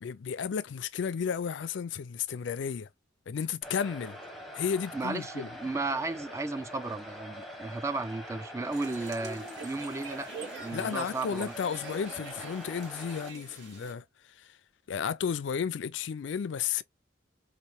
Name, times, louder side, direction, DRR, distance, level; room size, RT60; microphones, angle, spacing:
voice 1, 0.0-2.9 3.3-4.2 4.5-5.5 10.7-14.0 14.4-14.5 14.9-16.8, left 7 dB, 75° left, 0.4 m, -33 dB
sound 1, 3.6-13.3, equal, ahead, 0.8 m, -44 dB
voice 2, 4.9-10.3 10.6-11.5, right 3 dB, 15° right, 0.3 m, -34 dB
sound 2, 8.7-13.9, right 3 dB, 65° right, 1.7 m, -45 dB
4.2 x 2.5 x 3.1 m
head